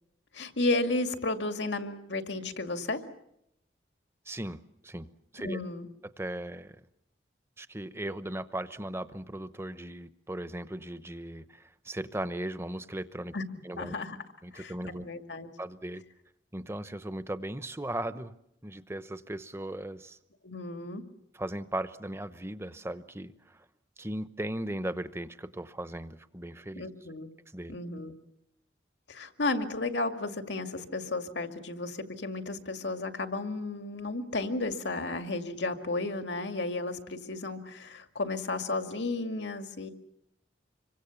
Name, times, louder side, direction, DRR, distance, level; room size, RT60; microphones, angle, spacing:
voice 1, 0.3-3.0 5.4-5.9 13.3-13.4 13.8-14.2 14.5-14.7 15.0-15.5 20.4-21.0 26.8-27.3 27.7-28.1 29.1-39.9, left 2 dB, 90° left, 6 dB, 2.1 m, -33 dB
voice 2, 4.3-5.1 5.3-5.6 6.2-6.8 7.6-13.4 13.6-13.9 14.4-15.1 15.6-16.0 16.5-18.3 18.6-20.2 21.3-23.6 24.0-26.9 27.5-27.8, right 1 dB, 15° right, 12 dB, 0.9 m, -37 dB
26.5 x 24.0 x 7.1 m, 0.79 s
head